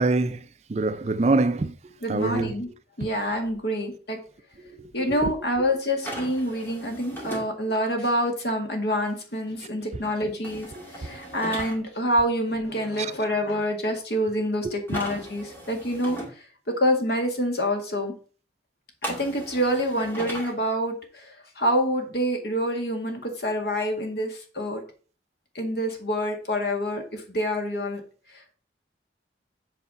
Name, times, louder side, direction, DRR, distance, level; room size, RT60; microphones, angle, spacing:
voice 1, 0.0-2.5 4.6-5.3 10.8-10.9 13.0-13.1 14.6-15.0, right 3 dB, 35° right, 0.4 m, -26 dB
voice 2, 2.0-2.7 3.0-4.2 4.9-16.2 16.7-18.1 19.0-24.8 25.5-28.0, equal, 65° left, 2.1 m, -27 dB
sound 1, 6.0-7.5 10.4-11.7 14.9-16.3 19.0-20.5, equal, 10° left, 2.1 m, -37 dB
8.0 x 4.8 x 5.6 m
head